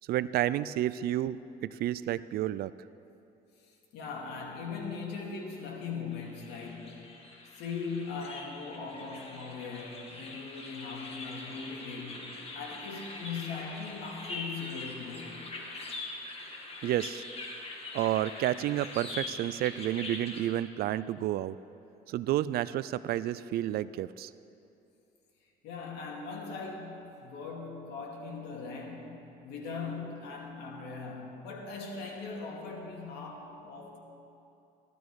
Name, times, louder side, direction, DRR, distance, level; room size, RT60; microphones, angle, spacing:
voice 1, 0.1-2.7 16.8-17.2 17.9-21.6 22.1-24.3, right 13 dB, 65° right, 16 dB, 0.4 m, -30 dB
voice 2, 3.7-7.2 7.6-15.4 25.6-34.0, left 4 dB, 85° left, 0 dB, 2.4 m, -40 dB
sound 1, 6.1-20.5, left 2 dB, 35° left, 2.1 m, -43 dB
16.0 x 12.0 x 4.7 m, 2.8 s
cardioid pair, 110°, 17 cm